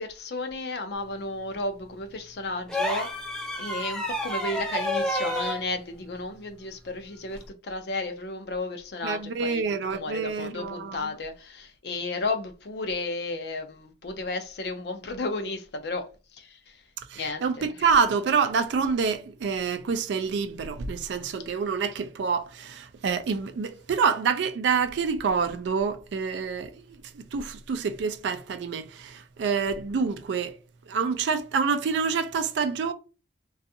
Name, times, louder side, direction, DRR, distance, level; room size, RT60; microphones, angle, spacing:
voice 1, 0.0-3.1 3.6-16.1 16.3-16.8 17.2-17.4, left 2 dB, 60° left, 0.5 m, -33 dB
sound 1, 2.7-5.6 7.3-7.5, equal, 5° left, 0.4 m, -29 dB
voice 2, 9.0-11.1 17.1-30.6 30.9-32.9, right 5 dB, 70° right, 0.3 m, -27 dB
2.5 x 2.3 x 2.7 m
head